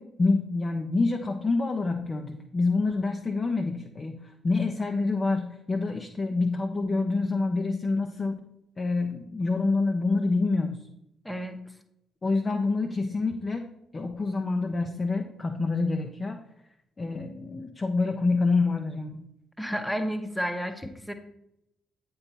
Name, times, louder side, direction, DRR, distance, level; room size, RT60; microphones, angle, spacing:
voice 1, 0.0-8.3 8.8-10.8 12.2-13.7 13.9-16.4 17.0-19.2, left 3 dB, 30° left, 4 dB, 0.6 m, -27 dB
voice 2, 11.2-11.6 19.6-21.1, equal, 5° left, 8 dB, 0.9 m, -31 dB
8.7 x 3.9 x 4.3 m, 0.78 s
figure-of-eight pair, 40°, 0 cm